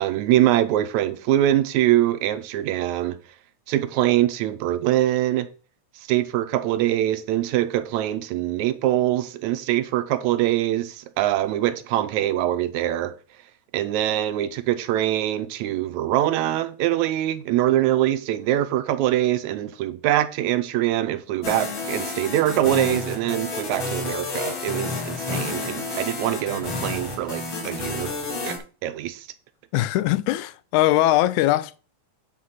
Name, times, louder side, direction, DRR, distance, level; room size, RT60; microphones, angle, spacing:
voice 1, 0.0-3.2 3.7-5.5 6.1-13.2 13.7-28.1 28.4-28.6 28.8-29.3, right 13 dB, 85° right, 2.0 m, -23 dB
sound 1, 21.4-28.6, left 3 dB, 45° left, 2.6 m, -30 dB
voice 2, 29.7-31.8, left 15 dB, 90° left, 2.0 m, -21 dB
9.4 x 4.2 x 5.7 m
omnidirectional pair, 3.3 m